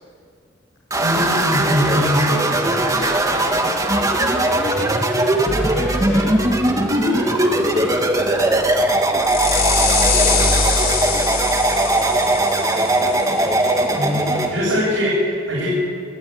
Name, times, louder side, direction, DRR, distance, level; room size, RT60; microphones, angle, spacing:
sound 1, 0.9-14.5, right 1 dB, 20° right, 1.9 m, -19 dB
voice 1, 1.0-2.2 13.9-15.7, left 1 dB, 75° right, -7 dB, 7.9 m, -21 dB
voice 2, 2.0-2.5 2.9-11.1, left 1 dB, 70° left, -5 dB, 4.5 m, -34 dB
sound 2, 5.5-14.7, left 3 dB, 50° left, 5.4 m, -24 dB
25.5 x 14.0 x 9.7 m, 2.3 s
head